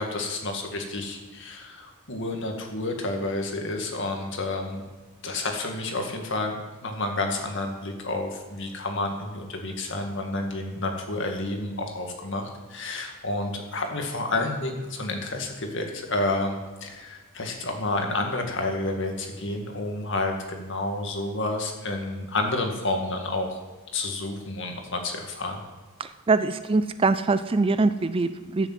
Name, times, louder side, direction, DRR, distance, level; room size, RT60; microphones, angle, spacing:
voice 1, 0.0-4.8 5.2-23.6 23.9-25.5, left 2 dB, 55° left, 3 dB, 2.1 m, -30 dB
voice 2, 26.0-28.7, right 3 dB, 25° right, 12 dB, 0.4 m, -23 dB
14.0 x 7.0 x 7.5 m, 1.3 s
head